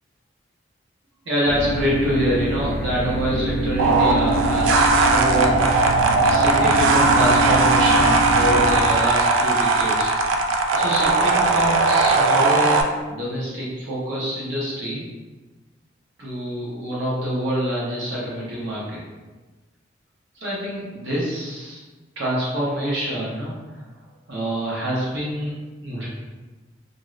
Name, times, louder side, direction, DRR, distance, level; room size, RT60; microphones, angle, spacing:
voice 1, 1.2-5.6 6.2-10.1 10.7-15.0 16.2-19.0 20.4-21.8 22.2-23.5 24.3-25.6 25.8-26.1, equal, 65° right, -7 dB, 0.9 m, -26 dB
sound 1, 1.5-8.8, right 1 dB, 50° left, 0.6 m, -25 dB
sound 2, 3.8-12.8, right 3 dB, 85° right, 0.3 m, -18 dB
3.1 x 2.6 x 2.4 m, 1.2 s
head